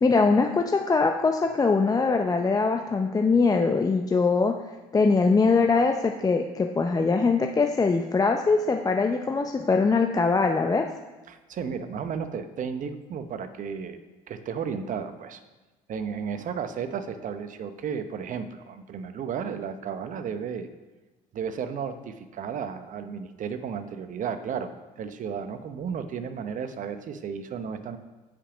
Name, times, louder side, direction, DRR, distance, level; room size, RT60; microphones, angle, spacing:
voice 1, 0.0-4.5 4.9-10.9, left 4 dB, 20° left, 4 dB, 0.6 m, -22 dB
voice 2, 11.3-14.0 14.3-15.4 15.9-20.7 21.3-24.7 25.0-28.0, right 7 dB, 50° right, 10 dB, 0.9 m, -33 dB
8.6 x 5.3 x 5.0 m, 1.2 s
supercardioid pair, 75°, 17 cm